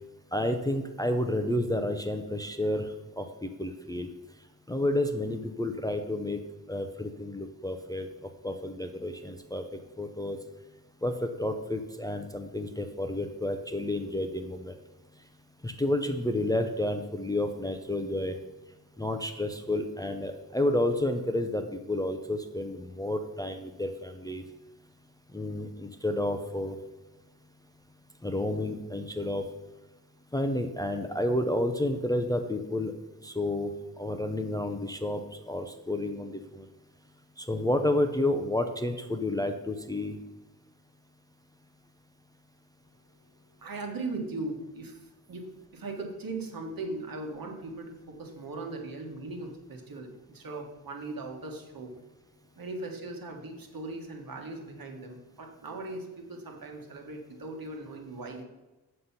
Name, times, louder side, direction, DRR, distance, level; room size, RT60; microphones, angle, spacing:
voice 1, 0.3-4.1 4.7-6.4 6.7-10.4 11.0-14.8 15.6-18.4 19.0-24.4 25.3-26.8 28.2-29.5 30.3-32.9 33.2-36.7 37.4-40.2, left 1 dB, 10° left, 6 dB, 0.5 m, -30 dB
voice 2, 43.6-51.9 52.5-58.4, right 2 dB, 65° right, 2 dB, 1.6 m, -39 dB
7.8 x 6.7 x 5.6 m, 1.1 s
wide cardioid pair, 170°, 37 cm